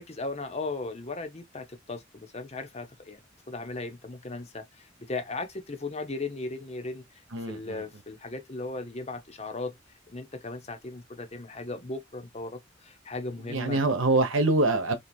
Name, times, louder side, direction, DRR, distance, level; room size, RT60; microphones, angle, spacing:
voice 1, 0.0-3.2 3.5-7.2 7.5-9.7 10.1-13.8, left 3 dB, 30° left, 0.8 m, -37 dB
voice 2, 7.3-7.8 13.5-14.9, right 2 dB, 80° right, 1.0 m, -25 dB
3.6 x 3.0 x 4.4 m
head